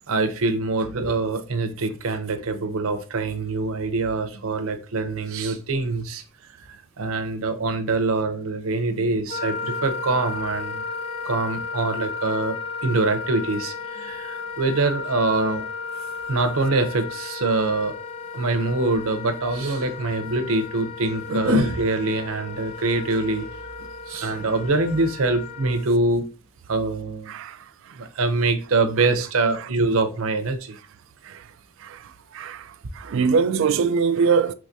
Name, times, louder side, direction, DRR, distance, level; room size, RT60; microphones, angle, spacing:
voice 1, 0.0-6.2 6.7-10.8 11.2-15.6 16.3-17.9 18.3-23.5 24.1-26.3 26.7-27.3 28.0-30.8, right 3 dB, 85° right, 0.7 m, -24 dB
Wind instrument woodwind instrument, 9.3-25.9, left 4 dB, 30° left, 0.4 m, -34 dB
voice 2, 32.3-32.7 33.0-34.5, right 5 dB, 65° right, 0.3 m, -22 dB
4.8 x 3.1 x 2.7 m
head